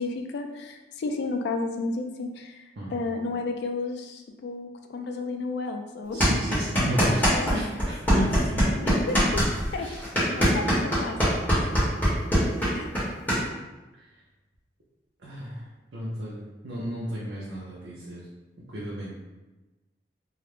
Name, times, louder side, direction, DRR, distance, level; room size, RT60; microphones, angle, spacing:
voice 1, 0.0-6.2 7.0-7.5 8.6-9.4 9.7-9.9 10.3-11.7 12.7-12.9, left 3 dB, 65° left, 4 dB, 0.3 m, -33 dB
voice 2, 2.8-3.1 6.1-8.6 9.8-10.0 15.2-15.6 15.9-18.2 18.7-19.2, equal, 75° right, -7 dB, 0.5 m, -33 dB
sound 1, 6.2-7.5 7.8-13.4, equal, 10° left, 0.9 m, -22 dB
2.3 x 2.0 x 3.0 m, 1.1 s
head